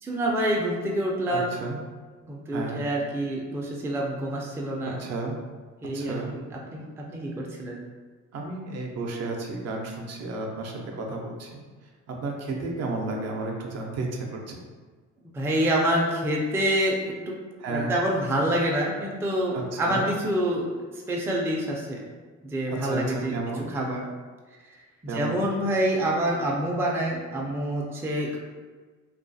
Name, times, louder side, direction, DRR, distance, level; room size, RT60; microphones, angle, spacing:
voice 1, 0.0-1.5 2.2-5.0 5.8-7.8 15.3-17.3 17.7-20.7 21.1-22.1 22.4-24.0 25.0-28.4, right 1 dB, 10° right, -2 dB, 0.3 m, -27 dB
voice 2, 1.3-1.8 2.5-2.9 5.0-5.4 5.9-6.3 8.3-11.6 12.1-14.6 17.6-17.9 19.5-20.1 22.7-23.7 25.1-25.4, right 2 dB, 55° right, 0 dB, 0.5 m, -32 dB
2.3 x 2.3 x 2.5 m, 1.4 s
cardioid pair, 90°, 30 cm